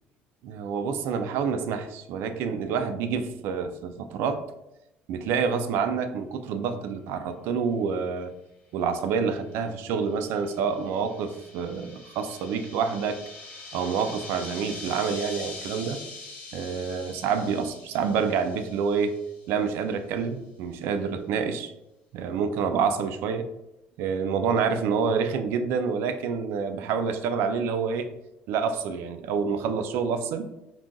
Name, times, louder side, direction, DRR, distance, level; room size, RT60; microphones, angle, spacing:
voice 1, 0.4-4.4 5.1-8.3 8.7-13.2 13.7-16.0 16.5-19.2 19.5-21.7 22.1-23.4 24.0-28.1 28.5-30.5, right 6 dB, 70° right, 8 dB, 0.3 m, -27 dB
sound 1, 9.7-19.5, left 3 dB, 35° left, 0.8 m, -43 dB
3.8 x 2.4 x 2.2 m, 0.91 s
cardioid pair, 110°, 4 cm